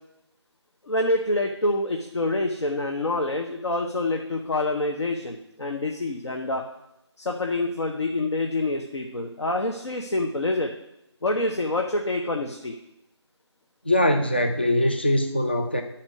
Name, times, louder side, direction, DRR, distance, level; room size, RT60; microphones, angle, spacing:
voice 1, 0.9-6.6 7.2-10.7 11.2-12.7, left 2 dB, 70° left, 2 dB, 0.9 m, -26 dB
voice 2, 13.9-15.8, left 1 dB, 20° left, 5 dB, 0.3 m, -22 dB
9.5 x 4.4 x 6.3 m, 0.86 s
figure-of-eight pair, 170°, 15 cm